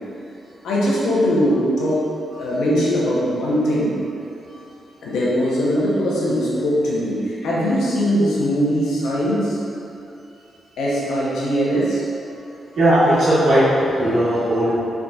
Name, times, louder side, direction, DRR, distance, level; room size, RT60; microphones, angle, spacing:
voice 1, 0.6-2.0 2.3-4.0 5.0-9.6 10.8-12.0, equal, 80° left, -6 dB, 0.8 m, -20 dB
voice 2, 12.7-14.8, right 1 dB, 70° right, -11 dB, 1.5 m, -17 dB
3.9 x 3.7 x 2.3 m, 2.7 s
supercardioid pair, 55°, 0 cm